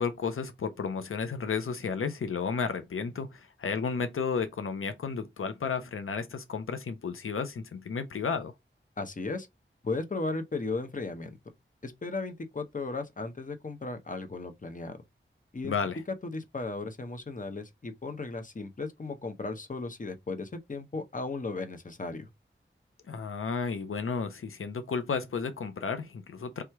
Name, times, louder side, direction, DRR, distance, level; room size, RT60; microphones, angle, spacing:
voice 1, 0.0-8.5 15.6-16.0 23.1-26.6, left 5 dB, 85° left, 0.5 m, -32 dB
voice 2, 9.0-9.5 9.8-11.4 11.8-15.0 15.5-15.8 16.2-22.3, left 3 dB, 40° left, 0.8 m, -36 dB
3.4 x 3.0 x 4.5 m
wide cardioid pair, 60°, 21 cm